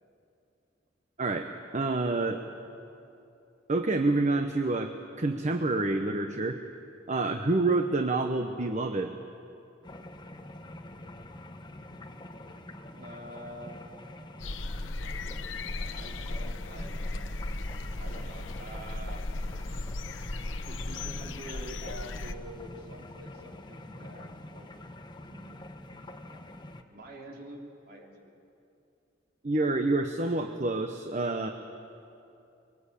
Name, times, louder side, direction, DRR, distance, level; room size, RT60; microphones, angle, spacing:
voice 1, 1.7-2.4 3.7-6.6 7.1-9.1 29.4-31.5, right 2 dB, 40° right, 6 dB, 1.0 m, -28 dB
sound 1, 9.8-26.8, left 1 dB, 25° left, 1.2 m, -46 dB
voice 2, 12.9-15.0 15.9-17.5 18.0-19.2 20.7-24.7 25.2-25.6 26.0-26.4 26.9-28.3, right 1 dB, 55° right, -1 dB, 4.1 m, -47 dB
sound 2, 14.4-22.3, left 2 dB, 85° left, 0.9 m, -36 dB
25.0 x 22.5 x 8.4 m, 2.7 s
head